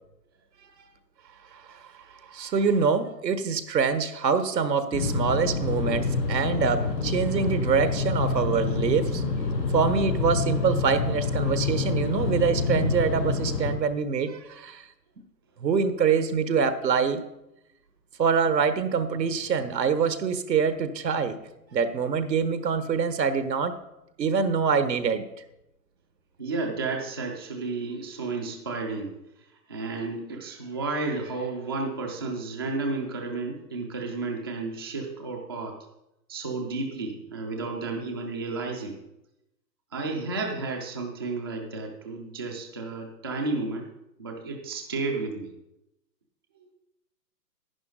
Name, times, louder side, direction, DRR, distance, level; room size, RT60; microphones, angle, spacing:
voice 1, 2.3-9.2 9.7-14.8 15.6-17.2 18.2-21.4 21.7-23.7 24.2-25.2, right 6 dB, 80° right, 11 dB, 1.4 m, -25 dB
sound 1, 4.9-13.7, left 4 dB, 80° left, 3.4 m, -27 dB
voice 2, 26.4-29.2 29.7-35.7 36.3-39.0 39.9-43.9 44.2-45.5, right 3 dB, 15° right, 1 dB, 0.4 m, -32 dB
11.0 x 10.0 x 3.9 m, 0.88 s
hypercardioid pair, 140°, 50 cm